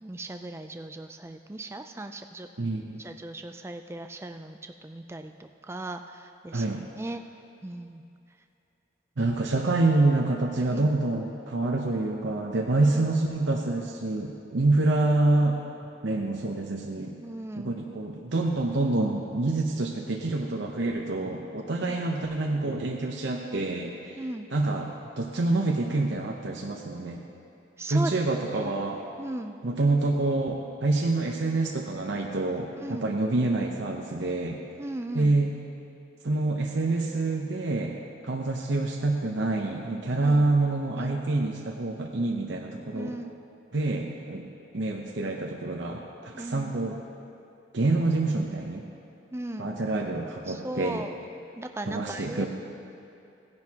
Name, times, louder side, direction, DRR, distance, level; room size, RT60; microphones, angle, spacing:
voice 1, 0.0-2.5 3.0-6.6 7.0-7.2 7.6-8.0 10.7-10.9 12.8-13.1 17.2-17.8 21.8-22.0 24.2-24.5 27.8-28.7 29.2-29.6 32.8-33.1 34.8-35.3 40.2-40.5 40.9-41.2 42.9-43.3 46.3-46.7 49.3-49.7 50.5-51.2 51.6-52.5, right 1 dB, 15° right, 6 dB, 0.4 m, -37 dB
voice 2, 2.6-3.0 6.5-6.8 9.2-15.6 16.0-17.1 17.6-24.2 24.5-24.9 25.2-27.2 27.9-29.0 29.6-34.6 35.1-35.5 36.2-43.2 43.7-44.5 44.7-47.0 47.7-48.8 49.6-51.0 51.8-52.5, right 2 dB, 75° right, 0 dB, 0.8 m, -27 dB
17.0 x 10.5 x 2.9 m, 2.7 s
head